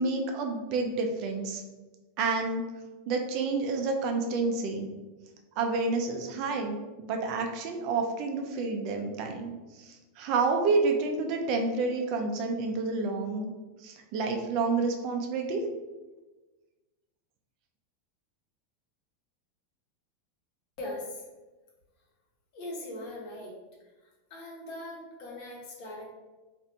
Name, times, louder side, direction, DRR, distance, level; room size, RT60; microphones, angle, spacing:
voice 1, 0.0-1.6 2.2-2.7 3.1-4.9 5.6-13.5 13.8-15.6, right 3 dB, 50° right, 3 dB, 0.5 m, -29 dB
voice 2, 20.8-21.2 22.5-23.5 24.3-26.0, left 1 dB, 55° left, -2 dB, 1.1 m, -40 dB
3.2 x 2.5 x 2.8 m, 1.2 s
supercardioid pair, 135°, 0 cm